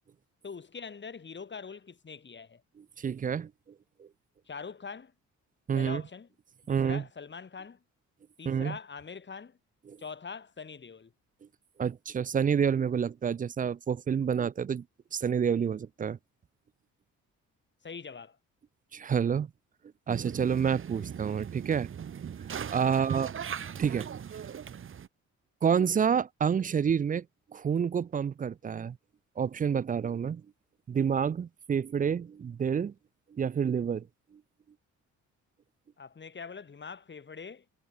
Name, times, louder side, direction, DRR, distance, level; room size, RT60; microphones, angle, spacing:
voice 1, 0.4-2.6 4.5-5.1 5.7-6.3 6.6-7.8 8.4-9.6 10.0-11.1 17.8-18.4 21.0-21.1 22.9-23.2 36.0-37.6, left 5 dB, 35° left, 6.7 m, -43 dB
voice 2, 2.8-3.5 4.0-4.1 5.7-6.0 6.7-7.0 8.5-8.8 9.9-10.0 11.8-14.8 15.1-16.2 18.9-19.5 20.1-21.9 22.4-23.3 23.8-24.2 25.6-27.3 27.5-29.0 29.4-30.4 30.9-32.9 33.3-34.1, right 7 dB, 30° right, 0.4 m, -28 dB
sound 1, 20.1-25.1, right 8 dB, 45° right, 1.2 m, -39 dB
cardioid pair, 90°, 30 cm